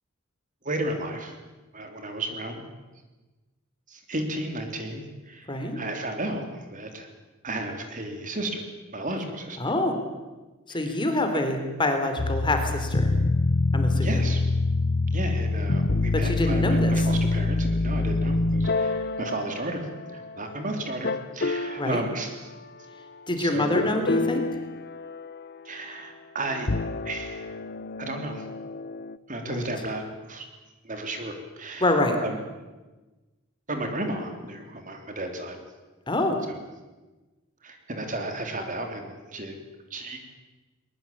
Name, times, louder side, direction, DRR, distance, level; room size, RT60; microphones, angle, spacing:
voice 1, 0.6-1.3 1.7-2.6 3.9-7.1 7.4-8.6 8.9-9.6 10.7-11.0 11.3-11.4 14.0-14.4 15.1-19.8 20.1-22.5 23.4-23.8 25.6-26.7 27.0-27.4 28.0-28.4 29.3-30.4 30.8-32.4 33.7-35.6 36.5-36.6 37.6-39.5 39.9-40.2, right 1 dB, 40° right, 5 dB, 3.3 m, -33 dB
voice 2, 5.5-5.8 9.6-10.0 10.7-13.1 13.7-14.1 16.1-16.9 21.8-22.0 23.3-24.4 29.4-29.6 31.8-32.2 36.1-36.4, left 1 dB, 20° left, 5 dB, 3.2 m, -26 dB
sound 1, 12.2-20.5 21.0-21.9 23.8-25.5 26.6-29.2, left 2 dB, 50° left, 0.8 m, -26 dB
21.5 x 21.0 x 8.6 m, 1.2 s
head